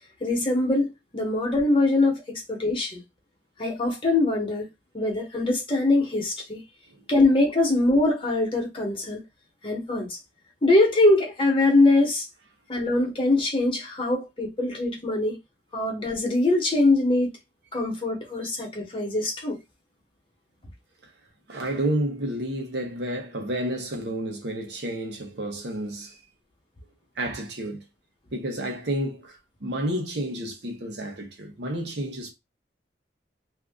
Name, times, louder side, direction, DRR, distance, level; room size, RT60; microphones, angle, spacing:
voice 1, 0.2-0.9 1.1-3.0 3.6-4.7 4.9-6.6 7.1-9.2 9.6-10.1 10.6-12.2 12.7-15.4 15.7-17.3 17.7-19.6, left 2 dB, 30° left, 1.1 m, -22 dB
voice 2, 21.5-26.2 27.2-27.8 28.3-32.3, right 1 dB, 70° right, 1.0 m, -30 dB
2.7 x 2.5 x 3.5 m
head